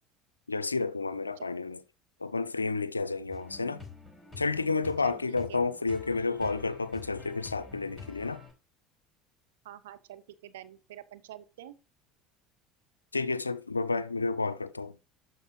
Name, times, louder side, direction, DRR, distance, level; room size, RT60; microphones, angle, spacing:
voice 1, 0.5-1.8 2.2-3.8 4.4-8.4 13.1-14.9, left 3 dB, 85° left, 0.4 m, -31 dB
sound 1, 3.3-8.5, left 4 dB, ahead, 5.4 m, -47 dB
voice 2, 5.0-5.6 9.6-11.8, right 12 dB, 70° right, 0.6 m, -47 dB
12.5 x 4.6 x 3.1 m
figure-of-eight pair, 65°, 0 cm